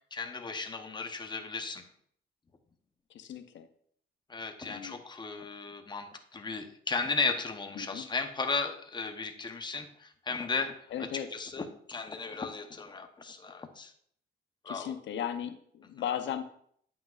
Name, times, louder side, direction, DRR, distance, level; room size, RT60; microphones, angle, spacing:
voice 1, 0.1-1.9 4.3-13.9 14.6-14.9, left 4 dB, 20° left, 5 dB, 0.8 m, -35 dB
voice 2, 3.1-3.7 4.6-5.0 7.8-8.1 10.9-11.3 14.7-16.4, left 9 dB, 70° left, 9 dB, 0.6 m, -36 dB
8.9 x 5.9 x 2.4 m, 0.65 s
cardioid pair, 90°, 20 cm